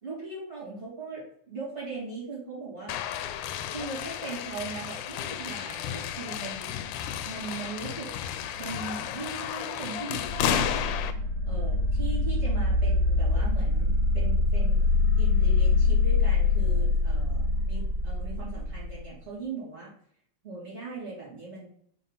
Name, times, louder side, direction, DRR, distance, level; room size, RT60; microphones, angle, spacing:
voice 1, 0.0-2.9 3.7-6.7 7.2-8.1 8.6-10.8 11.5-14.9 15.2-19.9 20.4-21.7, right 3 dB, 20° right, -7 dB, 2.6 m, -39 dB
sound 1, 2.9-11.1, left 10 dB, 85° left, 2.0 m, -33 dB
sound 2, 10.2-19.0, left 3 dB, 70° right, 3.0 m, -24 dB
5.6 x 4.2 x 4.1 m, 0.64 s
omnidirectional pair, 3.5 m